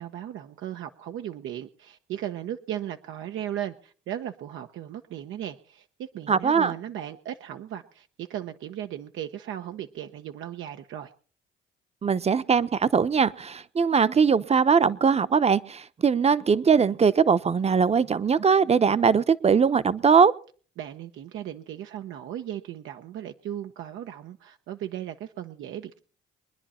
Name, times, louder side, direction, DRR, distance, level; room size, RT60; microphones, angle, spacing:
voice 1, 0.0-11.1 20.8-26.0, right 11 dB, 80° right, 6 dB, 0.9 m, -36 dB
voice 2, 6.3-6.7 12.0-20.3, right 6 dB, 30° right, 15 dB, 0.8 m, -21 dB
23.0 x 10.0 x 4.3 m, 0.42 s
cardioid pair, 90°, 20 cm